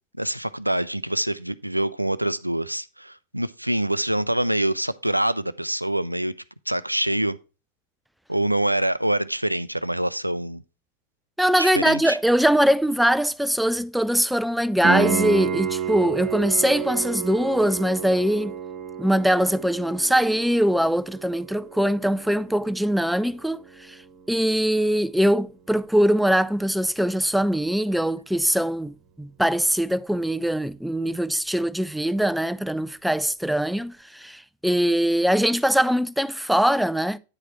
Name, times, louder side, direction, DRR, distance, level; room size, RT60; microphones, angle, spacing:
voice 1, 0.2-6.3 6.7-7.4 8.3-10.6 11.6-12.2, right 1 dB, 90° right, 0.4 m, -25 dB
voice 2, 11.4-18.6 19.0-24.0 24.3-37.2, equal, ahead, 0.3 m, -22 dB
Piano, 14.8-25.5 28.8-28.9, right 7 dB, 35° right, 1.3 m, -31 dB
9.6 x 4.9 x 4.3 m
figure-of-eight pair, 90°, 0 cm